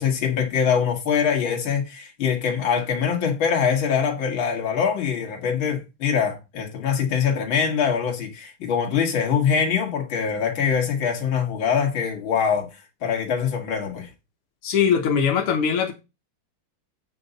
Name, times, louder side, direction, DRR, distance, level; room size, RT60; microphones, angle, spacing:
voice 1, 0.0-12.7 13.0-14.1, left 7 dB, 65° left, 2.4 m, -23 dB
voice 2, 14.6-15.9, left 7 dB, 90° left, 2.1 m, -21 dB
8.0 x 5.8 x 4.0 m
omnidirectional pair, 2.4 m